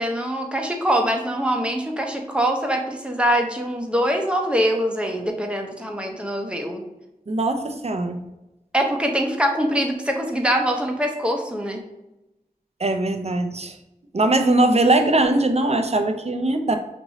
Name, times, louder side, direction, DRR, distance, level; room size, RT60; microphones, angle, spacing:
voice 1, 0.0-6.8 8.7-11.8, equal, 5° right, 2 dB, 0.8 m, -23 dB
voice 2, 7.3-8.2 12.8-13.8 14.1-16.8, right 2 dB, 45° right, 6 dB, 0.5 m, -20 dB
5.2 x 3.1 x 2.7 m, 0.95 s
wide cardioid pair, 40°, 15 cm